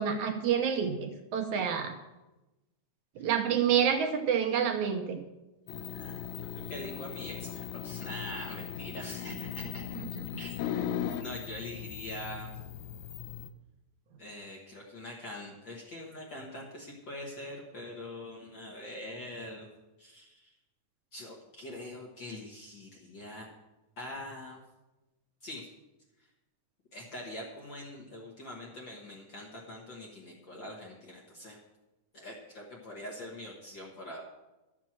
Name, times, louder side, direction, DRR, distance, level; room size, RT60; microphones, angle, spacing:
voice 1, 0.0-2.0 3.2-5.2 10.1-10.2, right 8 dB, 70° right, 5 dB, 2.1 m, -28 dB
sound 1, 5.7-13.5, left 10 dB, 75° left, 1.8 m, -38 dB
voice 2, 5.9-6.2 6.5-9.8 10.4-10.9 11.2-12.5 14.2-19.7 20.0-20.5 21.1-23.5 24.0-24.6 25.4-25.7 26.9-31.6 32.1-34.2, left 1 dB, 50° left, -2 dB, 1.6 m, -43 dB
12.5 x 6.1 x 7.3 m, 1.0 s
omnidirectional pair, 3.8 m